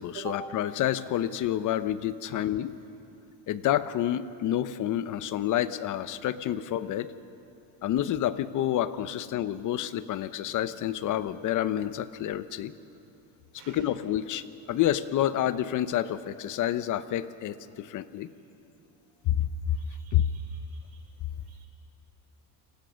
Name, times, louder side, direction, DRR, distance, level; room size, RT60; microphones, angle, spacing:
voice 1, 0.0-2.8 3.5-7.1 7.8-12.7 13.7-18.3 19.2-19.8 20.1-20.3, left 11 dB, 50° left, 13 dB, 0.9 m, -28 dB
voice 2, 19.9-20.6 20.9-21.0 21.5-21.7, right 5 dB, 85° right, 4 dB, 4.7 m, -44 dB
29.0 x 20.0 x 6.4 m, 2.7 s
cardioid pair, 130°, 38 cm